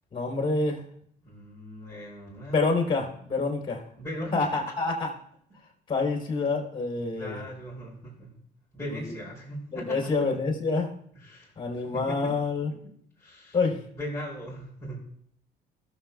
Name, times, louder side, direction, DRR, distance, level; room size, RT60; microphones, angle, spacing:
voice 1, 0.1-0.8 2.5-3.8 4.3-5.1 5.9-7.5 8.9-9.1 9.7-10.9 11.6-12.7 13.5-13.8, left 3 dB, 30° left, 0 dB, 3.2 m, -27 dB
voice 2, 1.2-3.0 4.0-4.5 7.1-8.4 8.7-10.3 11.2-12.3 13.2-13.6 14.0-15.0, equal, 10° left, -11 dB, 4.7 m, -39 dB
20.0 x 7.4 x 2.3 m, 0.65 s
cardioid pair, 110°, 17 cm